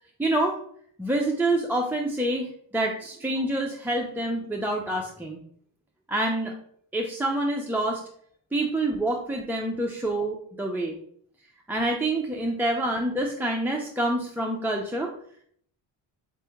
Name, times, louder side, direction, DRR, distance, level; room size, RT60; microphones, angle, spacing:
voice 1, 0.2-0.6 1.0-5.4 6.1-6.5 6.9-8.0 8.5-10.9 11.7-15.1, right 1 dB, 5° right, -1 dB, 0.3 m, -27 dB
4.3 x 2.9 x 3.4 m, 0.63 s
cardioid pair, 70°, 49 cm